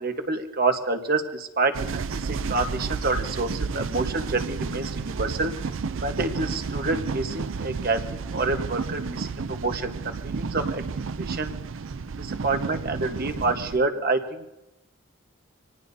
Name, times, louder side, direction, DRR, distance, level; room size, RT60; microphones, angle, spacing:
voice 1, 0.0-5.5 6.0-10.9 11.2-11.5 12.2-14.5, right 3 dB, 45° right, 6 dB, 1.3 m, -28 dB
sound 1, 1.7-13.8, right 5 dB, 65° right, 0.5 m, -31 dB
26.0 x 19.0 x 2.8 m, 0.93 s
head